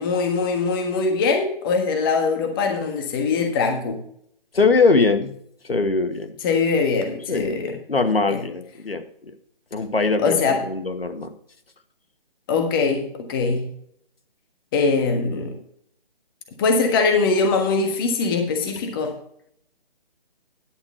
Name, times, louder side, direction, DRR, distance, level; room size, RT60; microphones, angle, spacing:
voice 1, 0.0-4.0 6.4-7.8 8.3-8.4 10.2-10.6 12.5-13.7 14.7-15.6 16.6-19.2, left 4 dB, 25° left, 5 dB, 1.5 m, -22 dB
voice 2, 4.5-5.3 5.6-6.4 7.3-9.3 9.7-11.3, left 4 dB, 85° left, 7 dB, 1.9 m, -22 dB
11.0 x 6.6 x 4.6 m, 0.65 s
figure-of-eight pair, 155°, 29 cm